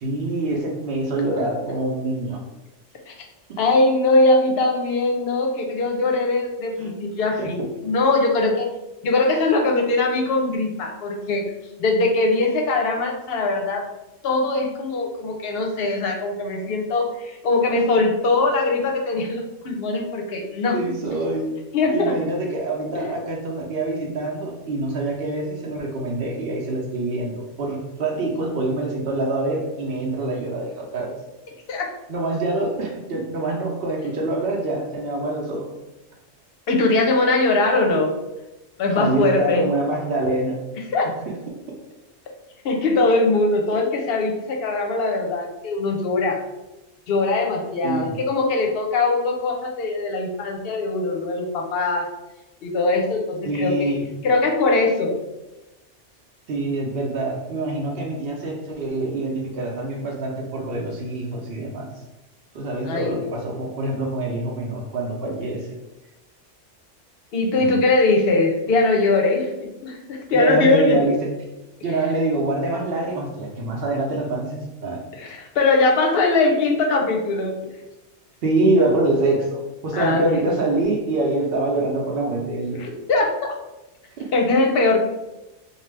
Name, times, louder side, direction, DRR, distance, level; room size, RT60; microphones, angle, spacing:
voice 1, 0.0-2.4 3.5-3.6 6.8-6.9 7.4-7.5 20.7-21.6 21.9-31.1 32.1-35.7 38.9-40.6 41.3-41.4 47.8-48.2 53.4-54.1 56.5-61.9 62.5-65.8 70.3-71.3 71.8-75.0 78.4-82.9, right 2 dB, 60° right, 0 dB, 0.8 m, -25 dB
voice 2, 3.6-8.7 9.0-11.4 11.8-13.9 14.2-20.8 21.7-22.2 22.9-23.1 31.7-31.9 36.7-38.2 38.8-39.7 40.9-41.1 42.6-46.4 47.1-52.1 52.6-53.9 54.2-55.2 62.8-63.2 67.3-71.1 75.2-77.6 79.9-80.4 82.7-83.5 84.3-85.0, left 3 dB, 65° left, 1 dB, 0.7 m, -21 dB
2.7 x 2.3 x 3.2 m, 0.99 s
omnidirectional pair, 1.2 m